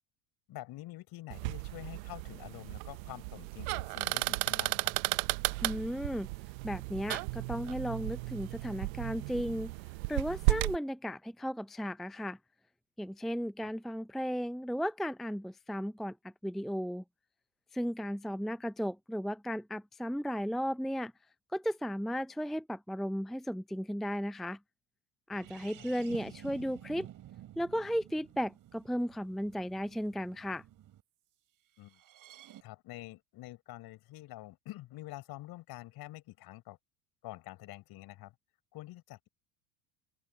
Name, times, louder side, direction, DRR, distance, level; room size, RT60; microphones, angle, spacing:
voice 1, 0.5-4.9 13.6-13.7 25.8-25.9 31.8-32.0 32.6-36.8 37.2-38.3 38.7-39.3, left 17 dB, 50° left, 5.8 m, -47 dB
sound 1, 1.3-10.8, right 26 dB, 60° right, 1.3 m, -34 dB
voice 2, 5.6-6.3 6.6-9.7 10.1-12.4 13.0-16.2 16.4-17.0 17.7-21.1 21.5-24.6 25.3-27.1 27.6-30.6, equal, ahead, 0.7 m, -35 dB
sound 2, 25.3-31.0 31.8-32.6, right 12 dB, 40° right, 5.9 m, -52 dB
figure-of-eight pair, 75°, 48 cm